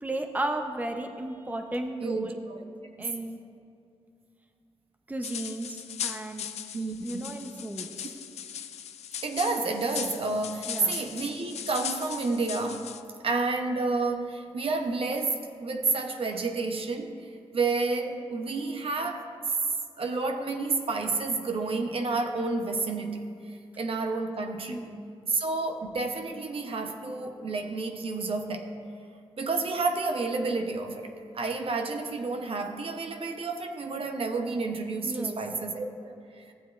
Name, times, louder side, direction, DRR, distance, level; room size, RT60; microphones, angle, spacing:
voice 1, 0.0-2.4 3.0-3.4 5.1-6.5 7.0-8.1 10.7-11.0 24.7-25.1 35.0-35.4, right 1 dB, 15° right, 5 dB, 0.7 m, -34 dB
voice 2, 2.0-2.7 3.0-3.1 6.7-7.3 9.2-12.9 13.2-19.3 20.0-24.9 25.3-28.7 29.4-36.5, right 3 dB, 60° right, 4 dB, 0.8 m, -30 dB
sound 1, 5.2-13.0, left 9 dB, 85° left, 0.4 m, -38 dB
14.5 x 7.5 x 2.5 m, 2.5 s
cardioid pair, 60°, 11 cm